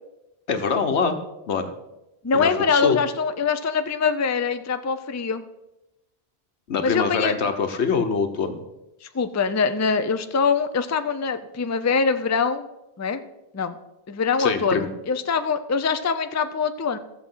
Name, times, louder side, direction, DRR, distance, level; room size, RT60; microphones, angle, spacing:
voice 1, 0.5-1.2 1.5-1.7 2.3-3.0 6.7-8.6 14.4-14.9, left 5 dB, 85° left, 7 dB, 1.3 m, -24 dB
voice 2, 2.2-5.4 6.8-7.3 9.0-12.7 13.0-13.2 13.5-13.7 14.1-17.0, left 5 dB, 25° left, 9 dB, 0.4 m, -23 dB
14.5 x 7.1 x 5.6 m, 0.96 s
omnidirectional pair, 1.1 m